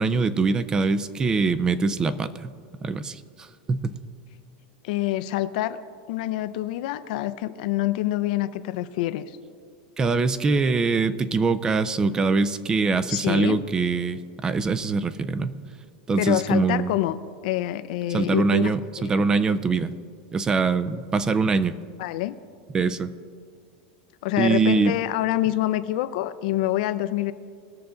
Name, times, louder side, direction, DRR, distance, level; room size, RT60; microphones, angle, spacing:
voice 1, 0.0-2.5 2.8-4.0 10.0-15.6 16.1-16.9 18.1-19.9 20.3-21.7 22.7-23.1 24.4-24.9, right 4 dB, 15° right, 14 dB, 0.4 m, -23 dB
voice 2, 4.8-5.8 6.1-9.2 13.1-13.6 16.2-17.2 17.4-18.7 22.0-22.4 24.2-27.3, left 15 dB, 60° left, 12 dB, 0.5 m, -26 dB
20.5 x 6.9 x 3.8 m, 2.2 s
supercardioid pair, 165°, 5 cm